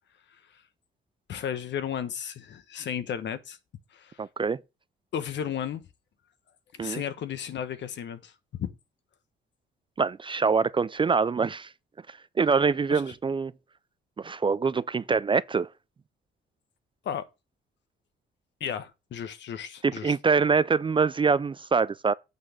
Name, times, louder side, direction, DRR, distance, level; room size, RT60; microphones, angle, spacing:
voice 1, 1.3-3.6 3.9-4.2 5.1-5.8 6.7-8.7 12.9-13.0 17.0-17.3 18.6-20.1, left 8 dB, 65° left, 1.1 m, -34 dB
voice 2, 4.2-4.6 6.8-7.0 10.0-11.7 12.1-13.5 14.2-15.7 19.8-22.1, right 5 dB, 25° right, 0.4 m, -25 dB
8.6 x 4.2 x 6.4 m
cardioid pair, 90°, 20 cm